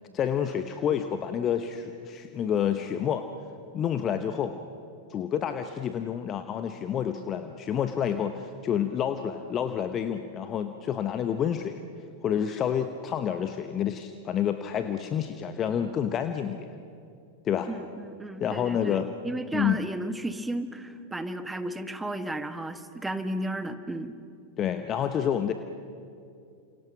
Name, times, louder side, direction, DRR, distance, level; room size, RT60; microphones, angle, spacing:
voice 1, 0.1-3.2 3.7-4.6 5.1-11.8 12.2-16.7 17.4-17.7 18.4-19.1 19.5-19.8 24.6-25.5, left 9 dB, 30° left, 9 dB, 1.0 m, -28 dB
voice 2, 17.7-24.1, right 1 dB, 10° right, 10 dB, 1.4 m, -34 dB
29.5 x 27.5 x 5.9 m, 2.5 s
figure-of-eight pair, 90°, 0 cm